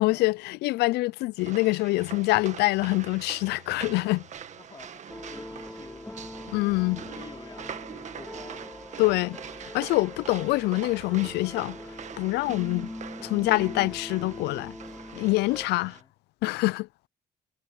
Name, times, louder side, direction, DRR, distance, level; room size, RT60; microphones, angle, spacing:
voice 1, 0.0-4.3 6.5-7.0 9.0-9.4 9.7-11.8 12.2-12.9 13.2-14.8 15.1-16.0 16.4-16.9, left 21 dB, 80° left, 0.4 m, -25 dB
sound 1, 1.4-16.0, right 8 dB, 45° right, 1.6 m, -44 dB
voice 2, 4.5-9.0 15.6-16.1, left 4 dB, 25° left, 2.8 m, -50 dB
sound 2, 5.1-15.7, left 1 dB, 5° left, 0.7 m, -42 dB
cardioid pair, 110°, 17 cm